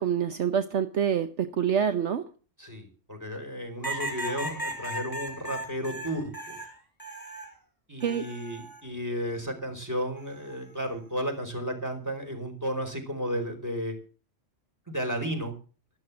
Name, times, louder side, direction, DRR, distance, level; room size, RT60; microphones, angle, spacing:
voice 1, 0.0-2.2 8.0-8.3, right 8 dB, 65° right, 9 dB, 1.2 m, -26 dB
voice 2, 2.6-6.6 7.9-13.9 14.9-15.5, equal, 15° right, 4 dB, 4.5 m, -33 dB
sound 1, 3.8-7.5 8.0-8.8 10.2-10.6, right 1 dB, 15° left, 4.1 m, -37 dB
12.5 x 12.0 x 7.2 m, 0.38 s
omnidirectional pair, 1.3 m